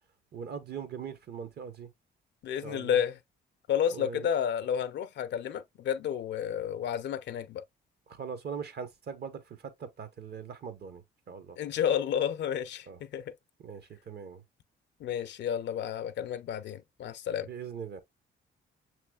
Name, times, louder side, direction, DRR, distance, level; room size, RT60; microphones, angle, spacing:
voice 1, 0.3-1.9 2.6-3.0 3.9-4.3 8.1-11.6 12.9-13.0 13.6-14.4 17.5-18.0, right 6 dB, 55° right, 0.9 m, -41 dB
voice 2, 2.4-3.2 3.7-7.6 11.6-13.3 15.0-17.5, left 9 dB, 65° left, 0.4 m, -31 dB
6.2 x 3.0 x 2.2 m
cardioid pair, 90°, 20 cm